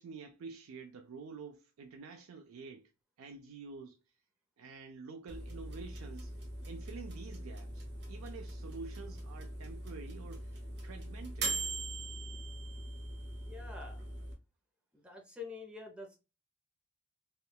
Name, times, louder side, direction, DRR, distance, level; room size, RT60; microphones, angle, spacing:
voice 1, 0.0-2.9 3.2-4.0 4.6-6.3 6.6-11.5, right 4 dB, 90° right, 0.4 m, -48 dB
sound 1, 5.3-14.3, right 2 dB, 55° right, 0.9 m, -41 dB
voice 2, 13.5-14.0 14.9-16.2, left 4 dB, 5° right, 0.5 m, -47 dB
3.6 x 2.2 x 2.3 m
head